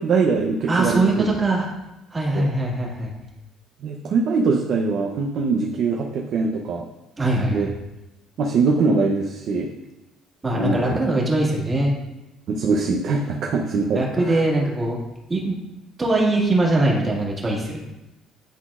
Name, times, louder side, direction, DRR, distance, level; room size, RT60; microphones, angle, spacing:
voice 1, 0.0-1.2 2.3-2.5 3.8-6.8 7.5-7.7 8.4-9.7 10.5-11.0 12.5-14.4, right 4 dB, 60° right, 0 dB, 0.6 m, -22 dB
voice 2, 0.7-1.7 2.1-3.1 7.2-7.7 10.4-11.9 13.9-15.0 15.3-15.6 16.0-17.9, right 2 dB, 20° right, -3 dB, 1.7 m, -21 dB
10.5 x 4.0 x 2.4 m, 0.98 s
cardioid pair, 105°, 0 cm